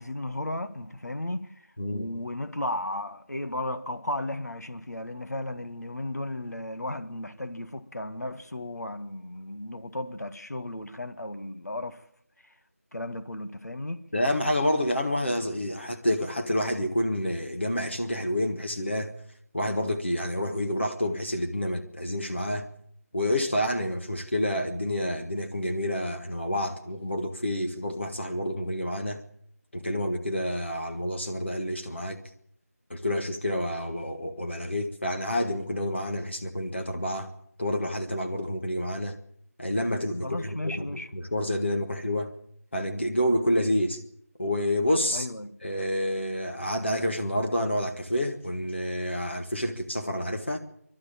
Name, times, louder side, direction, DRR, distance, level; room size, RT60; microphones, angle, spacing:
voice 1, 0.0-12.0 12.9-14.0 40.2-41.1 45.1-45.6, left 1 dB, 85° left, 1.8 m, -34 dB
voice 2, 14.1-19.1 19.5-22.7 23.1-29.2 29.7-32.2 32.9-37.3 37.6-39.1 39.6-40.9 41.1-42.3 42.7-44.0 44.4-45.3 45.6-50.6, left 1 dB, 45° left, 1.6 m, -28 dB
26.5 x 12.0 x 8.7 m
figure-of-eight pair, 180°, 9 cm